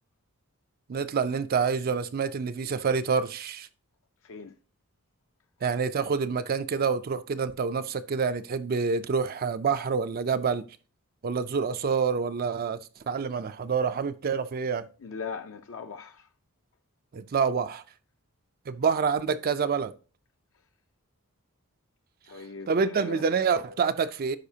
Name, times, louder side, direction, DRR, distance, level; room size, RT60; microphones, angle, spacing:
voice 1, 0.9-3.7 5.6-10.6 11.2-12.8 13.1-14.9 17.1-17.8 18.7-19.9 22.7-24.4, right 5 dB, 40° right, 0.4 m, -27 dB
voice 2, 4.2-4.6 15.0-16.3 22.3-23.2, left 4 dB, 60° left, 0.5 m, -39 dB
11.5 x 4.9 x 2.7 m
head